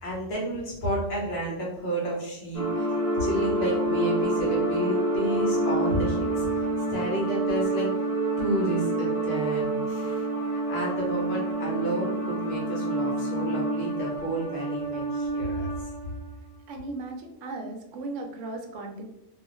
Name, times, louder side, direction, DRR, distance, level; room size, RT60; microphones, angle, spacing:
voice 1, 0.0-2.9 3.2-7.9 8.4-15.7, right 1 dB, 60° left, -3 dB, 0.9 m, -31 dB
sound 1, 2.5-16.2, right 2 dB, 30° left, 1.0 m, -28 dB
voice 2, 16.7-19.1, right 2 dB, 75° right, 4 dB, 0.9 m, -36 dB
2.4 x 2.3 x 2.9 m, 0.85 s
omnidirectional pair, 1.3 m